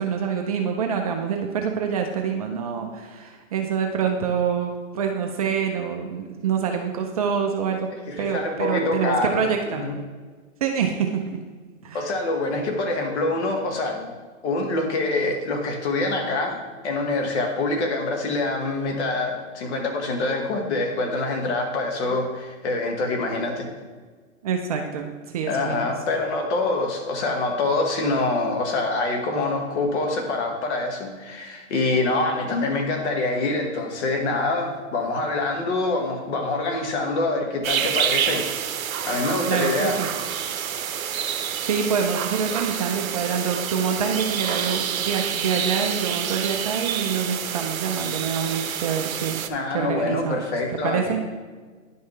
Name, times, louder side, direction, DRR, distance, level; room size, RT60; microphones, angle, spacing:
voice 1, 0.0-7.9 8.2-9.8 10.6-11.4 11.8-12.1 22.0-22.2 24.4-25.9 39.5-40.1 41.7-49.4 49.7-50.4 50.8-51.2, right 6 dB, 30° right, 3 dB, 0.5 m, -26 dB
voice 2, 8.1-10.0 11.9-14.1 14.4-23.7 25.5-38.5 39.0-40.1 49.5-51.2, left 2 dB, 55° left, 3 dB, 1.6 m, -25 dB
sound 1, 37.6-49.5, right 8 dB, 85° right, 0.7 m, -28 dB
10.5 x 5.4 x 3.2 m, 1.4 s
hypercardioid pair, 140°, 40 cm